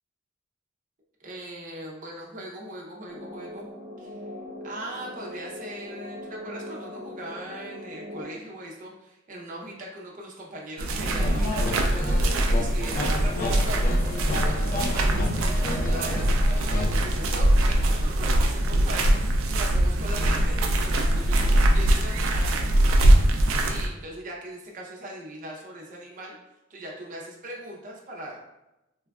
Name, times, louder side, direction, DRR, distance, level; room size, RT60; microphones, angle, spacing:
voice 1, 1.2-3.7 4.0-4.2 4.6-13.8 14.3-16.3 16.7-22.6 23.6-26.4 26.7-28.4, right 1 dB, 40° right, -2 dB, 0.6 m, -39 dB
sound 1, 3.1-8.2, left 1 dB, 75° left, 1.4 m, -40 dB
sound 2, 10.8-23.9, right 1 dB, 85° right, 0.4 m, -22 dB
sound 3, 11.1-17.7, left 2 dB, 40° left, 0.3 m, -33 dB
3.1 x 2.3 x 2.3 m, 0.94 s
head